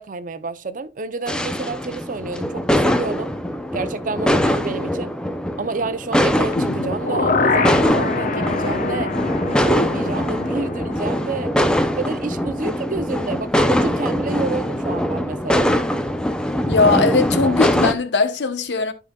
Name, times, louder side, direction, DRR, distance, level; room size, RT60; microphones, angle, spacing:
voice 1, 0.0-3.3 3.7-5.1 5.6-9.1 9.6-11.5 11.8-15.7, right 3 dB, 50° right, 0.6 m, -29 dB
sound 1, 1.3-17.9, equal, 5° left, 0.5 m, -22 dB
sound 2, 6.5-12.5 12.8-12.9, left 3 dB, 50° left, 0.8 m, -25 dB
voice 2, 16.7-18.9, left 3 dB, 80° left, 0.9 m, -19 dB
12.5 x 5.0 x 2.3 m
head